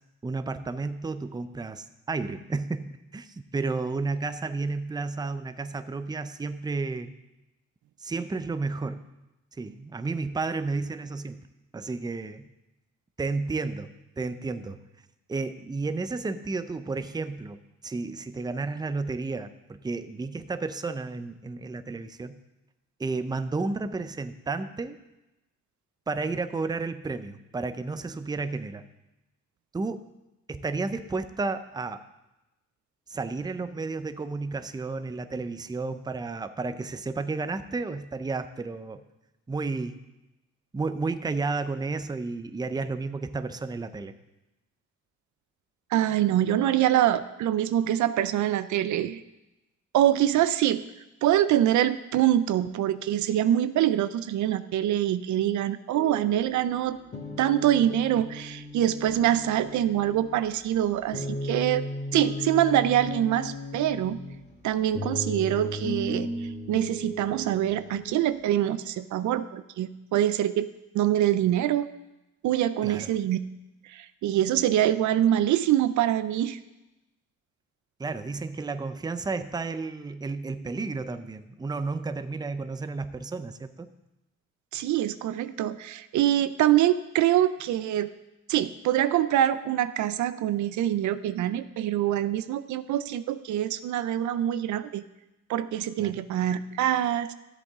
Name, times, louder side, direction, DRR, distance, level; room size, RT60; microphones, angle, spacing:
voice 1, 0.2-7.1 8.0-9.1 9.6-11.4 11.7-12.5 13.2-14.8 15.3-22.4 23.0-25.0 26.1-28.8 29.7-30.0 30.5-32.0 33.1-39.0 39.5-40.0 40.7-44.1 72.8-73.1 78.0-83.9 96.0-96.2, right 3 dB, 15° right, 10 dB, 0.5 m, -32 dB
voice 2, 45.9-49.2 49.9-50.8 51.2-57.0 57.4-61.8 62.1-64.2 64.6-70.7 70.9-71.9 72.4-73.4 73.8-76.6 84.7-88.1 88.5-95.0 95.5-97.3, right 12 dB, 75° right, 13 dB, 0.5 m, -25 dB
sound 1, 55.9-68.2, left 1 dB, 35° left, 1.7 m, -36 dB
13.0 x 8.0 x 3.6 m, 0.97 s
cardioid pair, 90°, 30 cm